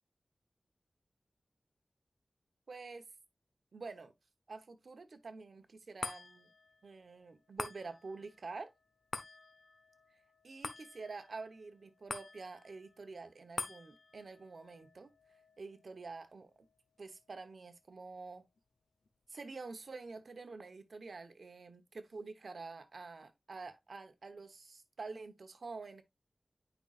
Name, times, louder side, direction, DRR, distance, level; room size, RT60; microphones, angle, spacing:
voice 1, 2.7-3.1 3.7-4.1 4.5-6.5 6.8-8.7 10.4-15.1 15.6-16.7 17.0-18.5 19.3-26.0, right 4 dB, 80° right, 1.0 m, -48 dB
sound 1, 6.0-18.6 19.0-19.1, left 4 dB, 90° left, 0.9 m, -49 dB
9.0 x 5.4 x 2.4 m
wide cardioid pair, 85°, 0 cm